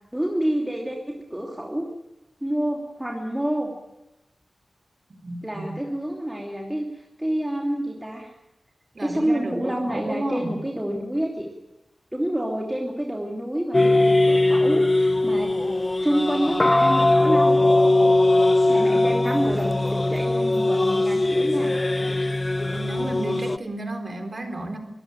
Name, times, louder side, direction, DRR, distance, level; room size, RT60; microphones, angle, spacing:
voice 1, 0.1-1.8 2.4-3.7 5.4-8.3 9.0-11.5 12.1-15.5 16.0-18.1 18.7-21.8, right 1 dB, 10° right, 0 dB, 3.0 m, -28 dB
voice 2, 5.2-5.7 8.9-10.6 22.7-24.8, right 1 dB, 40° right, 6 dB, 3.9 m, -32 dB
sound 1, 13.7-23.6, left 2 dB, 25° left, 0.7 m, -20 dB
23.5 x 16.0 x 8.9 m, 0.94 s
wide cardioid pair, 95°, 0 cm